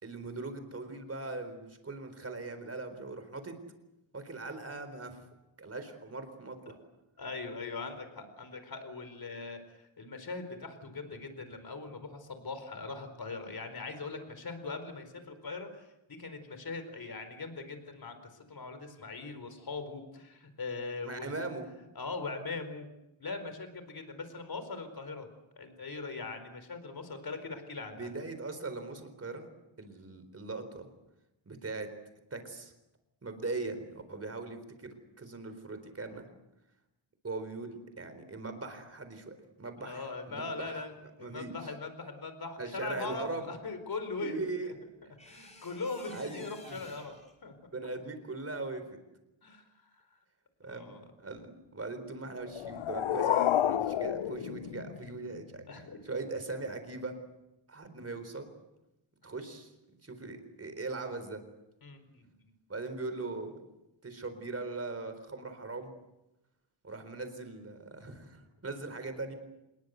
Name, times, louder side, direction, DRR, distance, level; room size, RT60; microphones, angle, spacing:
voice 1, 0.0-3.5 4.1-5.2 5.6-6.8 21.0-21.7 28.0-29.5 29.8-30.9 31.5-31.9 32.3-32.7 33.2-36.3 37.2-40.8 41.2-41.5 42.6-43.5 44.2-44.7 46.1-46.8 47.7-49.0 50.6-50.9 51.2-55.6 56.0-57.1 57.7-58.5 59.2-59.7 60.0-61.4 62.7-63.5 64.0-65.9 66.8-69.3, right 3 dB, 30° right, 9 dB, 4.2 m, -40 dB
voice 2, 7.2-21.5 21.9-22.9 23.2-25.3 25.6-28.1 39.8-40.9 41.2-44.4 45.2-47.5 49.4-49.6 49.9-50.0 50.6-51.0 55.7-56.0 61.8-62.5, left 3 dB, 50° left, 9 dB, 4.6 m, -41 dB
sound 1, 43.9-44.0 45.2-47.3, left 1 dB, 15° left, 5.7 m, -53 dB
sound 2, 52.4-55.4, left 11 dB, 85° left, 0.9 m, -30 dB
26.5 x 21.5 x 8.2 m, 0.92 s
wide cardioid pair, 150°, 47 cm